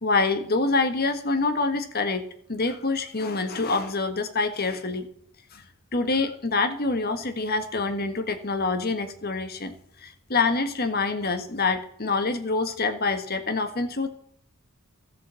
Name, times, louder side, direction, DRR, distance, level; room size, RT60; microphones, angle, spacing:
voice 1, 0.0-5.1 5.5-5.6 5.9-9.7 10.0-14.1, left 3 dB, 45° left, 8 dB, 1.5 m, -26 dB
13.5 x 7.4 x 7.6 m, 0.64 s
head